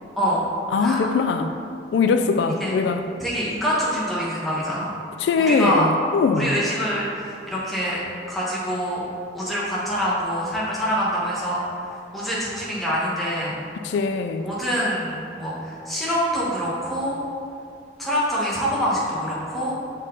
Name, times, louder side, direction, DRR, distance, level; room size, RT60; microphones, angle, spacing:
voice 1, 0.7-1.5 1.9-3.0 5.2-6.6 13.8-14.5, left 4 dB, 75° left, 8 dB, 0.3 m, -21 dB
voice 2, 3.2-5.0 5.4-5.9 6.3-8.0 8.3-9.0 9.3-11.6 12.1-13.5 14.4-17.2 18.0-19.7, equal, ahead, -8 dB, 1.2 m, -25 dB
6.1 x 4.4 x 3.8 m, 2.5 s
head